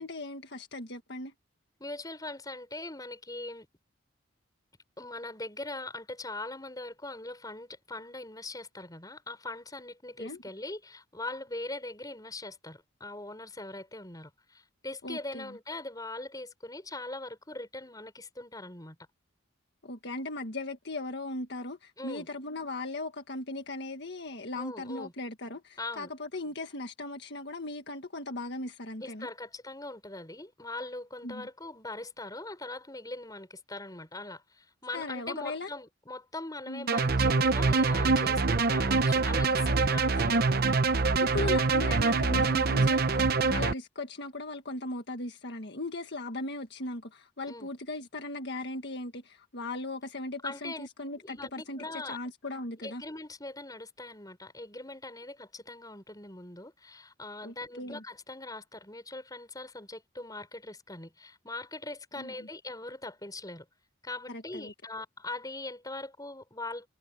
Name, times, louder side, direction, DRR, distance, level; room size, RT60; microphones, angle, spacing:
voice 1, 0.0-1.3 10.2-10.4 15.0-15.5 19.8-29.3 31.2-31.5 34.9-35.7 36.7-36.9 41.2-53.0 57.4-58.0 62.2-62.3 64.3-64.7, left 2 dB, 55° left, 1.7 m, -38 dB
voice 2, 1.8-3.7 5.0-19.0 22.0-22.3 24.5-25.1 25.8-26.1 29.0-40.5 47.5-47.7 50.4-50.9 51.2-52.2 52.8-63.7 64.0-66.9, left 2 dB, 20° left, 6.0 m, -41 dB
sound 1, 36.9-43.7, right 4 dB, 50° right, 0.8 m, -25 dB
head